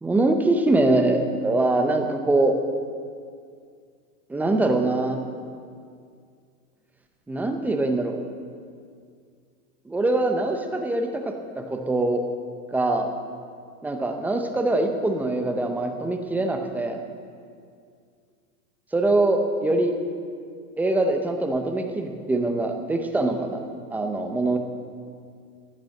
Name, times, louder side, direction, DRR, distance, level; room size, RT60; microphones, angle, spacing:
voice 1, 0.0-2.6 4.3-5.2 7.3-8.2 9.9-12.3 12.7-13.1 13.8-17.0 18.9-19.9 20.8-23.6 23.9-24.6, right 2 dB, 5° right, 5 dB, 0.5 m, -23 dB
14.5 x 9.2 x 7.5 m, 2.2 s
supercardioid pair, 150°, 44 cm